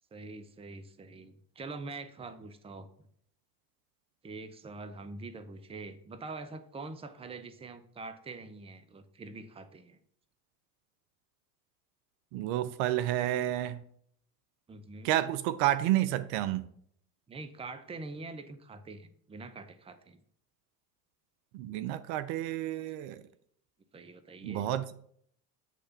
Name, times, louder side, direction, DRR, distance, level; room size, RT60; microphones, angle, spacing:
voice 1, 0.1-2.9 4.2-10.0 14.7-15.1 17.3-20.2 23.9-24.7, right 3 dB, 10° right, 0.6 m, -44 dB
voice 2, 12.3-13.8 15.0-16.6 21.5-23.2 24.4-24.9, right 13 dB, 55° right, 0.6 m, -30 dB
8.2 x 3.3 x 5.8 m
hypercardioid pair, 85°, 49 cm